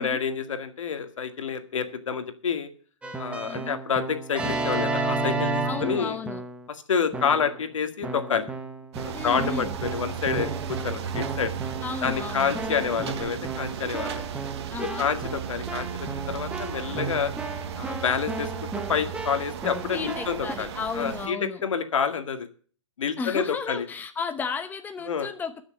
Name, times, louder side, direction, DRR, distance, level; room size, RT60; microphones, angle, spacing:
voice 1, 0.0-2.7 3.2-6.2 6.9-8.5 9.0-11.6 12.0-14.3 15.0-15.9 16.3-17.3 17.8-18.5 18.9-20.7 21.0-22.5 23.0-23.8 25.1-25.3, left 6 dB, 80° left, 8 dB, 1.9 m, -28 dB
Keyboard (musical), 3.0-6.7 7.1-7.6 8.0-20.5, right 3 dB, 5° right, 1.3 m, -33 dB
voice 2, 3.5-3.8 5.6-6.4 9.1-9.8 11.8-12.6 14.7-15.1 19.9-21.6 23.2-25.6, left 5 dB, 10° left, 8 dB, 0.9 m, -33 dB
sound 1, 8.9-21.3, right 8 dB, 55° right, 1.7 m, -35 dB
13.5 x 6.5 x 8.5 m, 0.43 s
hypercardioid pair, 135°, 16 cm